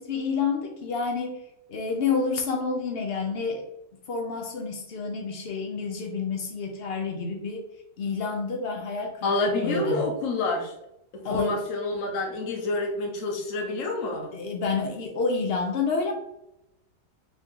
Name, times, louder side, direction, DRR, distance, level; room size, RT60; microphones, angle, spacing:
voice 1, 0.0-3.7 4.1-7.7 8.0-9.3 9.6-10.0 11.2-11.6 14.3-16.1, left 4 dB, 85° left, 2 dB, 0.5 m, -29 dB
voice 2, 9.2-10.7 11.1-14.3, left 2 dB, 55° left, 2 dB, 1.1 m, -28 dB
4.2 x 3.0 x 3.6 m, 0.83 s
omnidirectional pair, 1.9 m